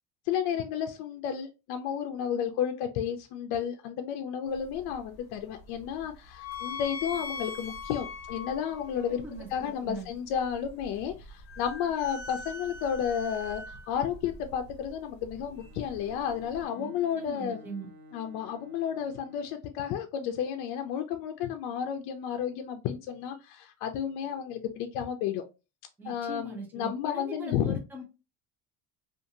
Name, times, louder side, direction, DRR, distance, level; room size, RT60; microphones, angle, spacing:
voice 1, 0.3-9.2 9.5-17.6 18.1-25.4 26.0-27.8, left 8 dB, 85° left, 6 dB, 0.5 m, -32 dB
sound 1, 4.5-16.6, left 4 dB, 40° left, 0.8 m, -43 dB
voice 2, 8.9-10.1 16.7-17.9 26.0-28.0, right 2 dB, 5° right, 0 dB, 0.5 m, -41 dB
Bowed string instrument, 15.6-19.7, left 1 dB, 85° right, 0.9 m, -53 dB
2.5 x 2.5 x 2.7 m, 0.28 s
cardioid pair, 170°, 38 cm